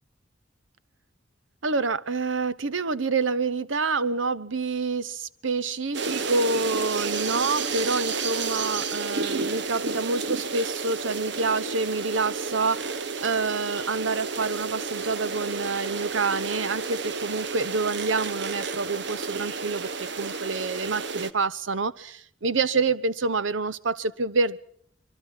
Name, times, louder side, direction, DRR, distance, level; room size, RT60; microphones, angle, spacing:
voice 1, 1.6-24.6, right 4 dB, 90° right, 16 dB, 1.0 m, -27 dB
sound 1, 5.9-21.3, right 4 dB, 65° right, 1.2 m, -31 dB
25.5 x 23.0 x 5.5 m, 0.64 s
head